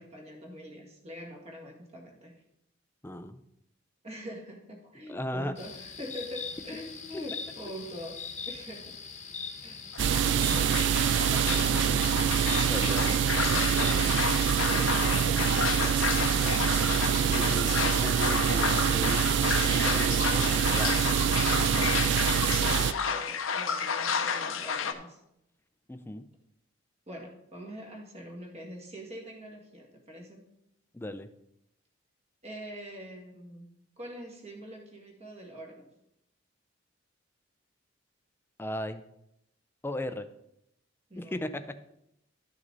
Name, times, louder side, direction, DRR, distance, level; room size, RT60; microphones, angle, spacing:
voice 1, 0.0-2.4 4.0-9.0 9.6-10.1 10.5-12.2 13.7-17.6 21.5-25.2 27.1-30.5 32.4-35.9 41.1-41.4, equal, 35° right, 1 dB, 1.9 m, -44 dB
voice 2, 3.0-3.4 5.1-5.5 12.6-13.2 17.3-19.2 19.7-21.2 25.9-26.3 30.9-31.3 38.6-39.0 39.8-40.3 41.2-41.6, left 1 dB, 10° left, 10 dB, 0.5 m, -36 dB
sound 1, 5.6-14.1, left 5 dB, 35° left, 1.1 m, -41 dB
sound 2, 9.9-24.9, left 6 dB, 85° left, 0.8 m, -31 dB
sound 3, 10.0-22.9, right 9 dB, 60° right, 0.3 m, -25 dB
12.0 x 6.2 x 4.0 m, 0.82 s
head